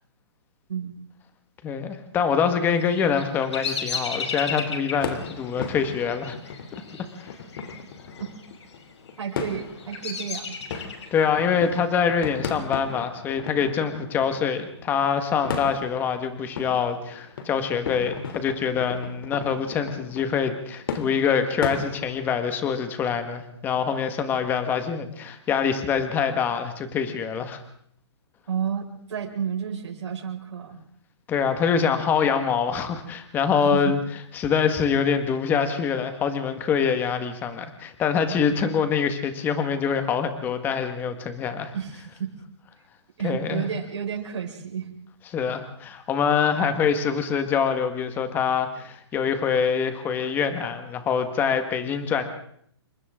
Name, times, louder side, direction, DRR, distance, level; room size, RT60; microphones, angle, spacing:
voice 1, 1.6-6.4 7.2-7.3 11.1-27.6 31.3-34.0 34.3-41.7 43.2-43.6 45.3-52.2, left 6 dB, 15° left, 8 dB, 1.7 m, -25 dB
Bird vocalization bird call bird song, 2.7-8.6 9.2-11.2, left 5 dB, 75° left, 5.2 m, -34 dB
sound 1, 5.0-22.4, left 6 dB, 50° left, 3.2 m, -36 dB
voice 2, 9.2-10.6 28.5-30.8 33.7-33.8 41.7-42.4 43.2-44.9, right 7 dB, 80° right, -3 dB, 5.7 m, -31 dB
28.5 x 25.5 x 3.8 m, 0.65 s
hypercardioid pair, 165°, 15 cm